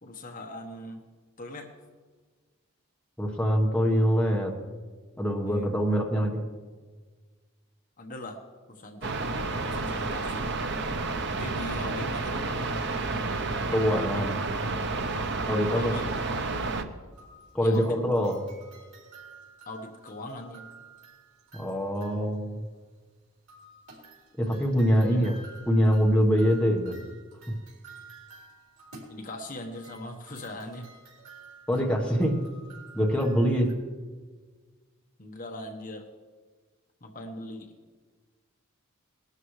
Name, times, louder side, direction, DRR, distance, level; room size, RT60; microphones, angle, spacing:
voice 1, 0.0-1.0 1.4-1.7 5.4-5.7 8.0-8.4 8.7-10.5 11.3-12.5 15.7-16.1 17.6-18.0 19.6-20.7 24.9-25.2 29.1-30.9 33.4-33.6 35.2-36.0 37.0-37.7, left 1 dB, 40° left, 3 dB, 1.2 m, -40 dB
voice 2, 3.2-4.5 5.2-6.4 13.7-14.4 15.5-15.9 17.5-18.4 21.5-22.6 24.4-25.4 25.7-27.0 31.7-32.3 32.9-33.7, equal, 5° left, -1 dB, 1.2 m, -24 dB
sound 1, 9.0-16.8, right 3 dB, 50° right, 0.8 m, -30 dB
sound 2, 17.1-22.5 23.5-33.7, right 3 dB, 90° right, 4.4 m, -51 dB
20.0 x 12.5 x 3.2 m, 1.4 s
head